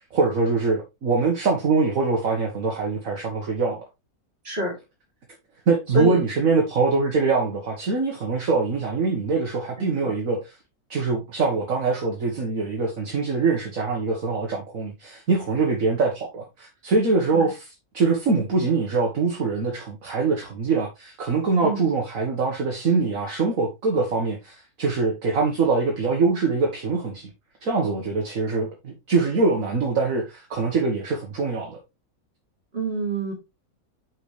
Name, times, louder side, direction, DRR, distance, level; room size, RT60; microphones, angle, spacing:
voice 1, 0.1-3.8 5.7-10.6 10.9-17.7 17.9-27.3 27.6-31.8, right 4 dB, 65° right, 1.9 m, -23 dB
voice 2, 5.9-6.2 9.8-10.2 17.3-17.5 21.6-21.8 32.7-33.3, equal, 45° right, 3.7 m, -26 dB
7.8 x 6.0 x 3.3 m
omnidirectional pair, 1.6 m